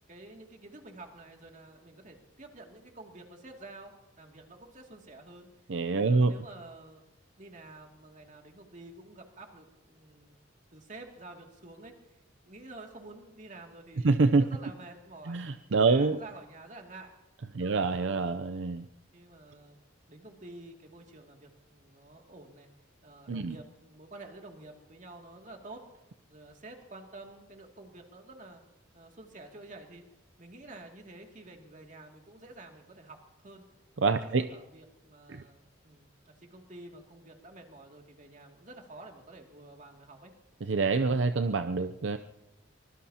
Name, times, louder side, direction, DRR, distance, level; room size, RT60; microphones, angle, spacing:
voice 1, 0.1-5.5 5.9-7.0 7.4-10.4 10.7-15.4 15.9-17.1 17.6-18.4 19.1-19.8 20.1-22.7 23.0-25.8 26.3-28.6 28.9-30.0 30.4-33.6 34.2-40.3, right 2 dB, 40° right, 2 dB, 2.5 m, -49 dB
voice 2, 5.7-6.3 14.0-14.4 15.3-16.2 17.5-18.8 23.3-23.6 34.0-34.4 35.3-35.4 40.6-42.2, right 4 dB, 65° right, 9 dB, 0.6 m, -26 dB
24.0 x 21.0 x 2.9 m, 0.97 s
head